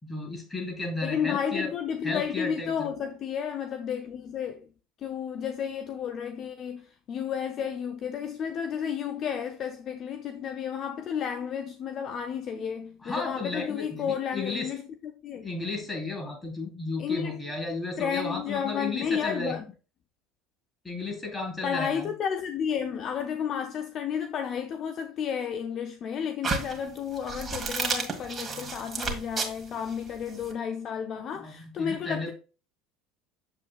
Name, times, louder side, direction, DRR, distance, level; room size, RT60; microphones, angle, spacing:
voice 1, 0.0-1.7 2.0-2.9 13.0-14.7 15.4-19.6 20.8-22.1 31.2-32.3, left 2 dB, 15° left, 4.1 m, -34 dB
voice 2, 1.0-4.7 5.0-15.5 17.0-17.5 18.0-19.6 21.6-32.3, left 8 dB, 45° left, 0.7 m, -32 dB
sound 1, 26.4-30.5, right 4 dB, 25° right, 1.9 m, -32 dB
7.7 x 7.0 x 2.4 m
hypercardioid pair, 75°, 0 cm